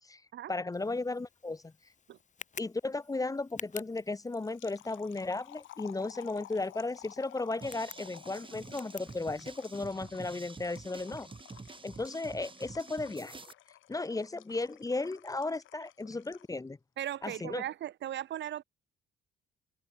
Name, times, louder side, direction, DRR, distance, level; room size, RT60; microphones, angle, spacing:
voice 1, 0.5-1.7 2.6-11.3 11.8-13.3 13.9-16.8 17.2-17.6, left 3 dB, 15° left, 0.9 m, -35 dB
Tick, 0.7-9.9, left 6 dB, 40° left, 2.1 m, -52 dB
sound 1, 4.0-16.6, left 14 dB, 80° left, 1.2 m, -54 dB
sound 2, 7.6-13.5, right 4 dB, 25° right, 2.9 m, -48 dB
voice 2, 17.0-18.6, right 12 dB, 65° right, 1.0 m, -37 dB
cardioid pair, 90°, 20 cm